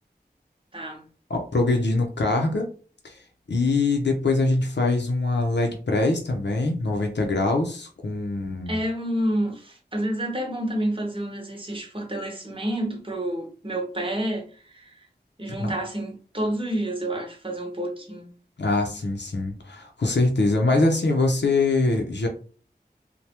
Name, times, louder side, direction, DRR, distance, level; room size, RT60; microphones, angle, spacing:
voice 1, 0.7-1.0 8.7-15.1 15.4-18.3, right 1 dB, 30° right, 0.9 m, -29 dB
voice 2, 1.3-2.7 3.0-3.2 3.5-8.8 15.6-15.7 18.6-22.3, left 2 dB, 85° left, 0.6 m, -23 dB
3.3 x 2.2 x 2.8 m
wide cardioid pair, 45°, 18 cm